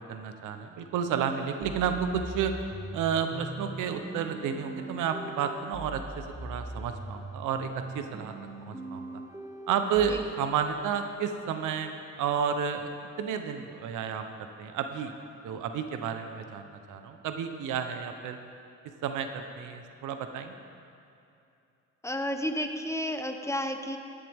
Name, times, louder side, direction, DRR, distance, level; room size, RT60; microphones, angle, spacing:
voice 1, 0.0-2.5 2.9-8.3 8.6-9.2 9.7-12.9 13.2-15.1 15.4-18.4 19.0-20.5, right 7 dB, 85° right, 7 dB, 0.9 m, -31 dB
sound 1, 1.6-10.2, right 2 dB, 10° right, 0.9 m, -41 dB
voice 2, 22.0-24.0, equal, 10° left, 6 dB, 0.8 m, -32 dB
15.0 x 11.0 x 3.6 m, 2.6 s
cardioid pair, 90°, 30 cm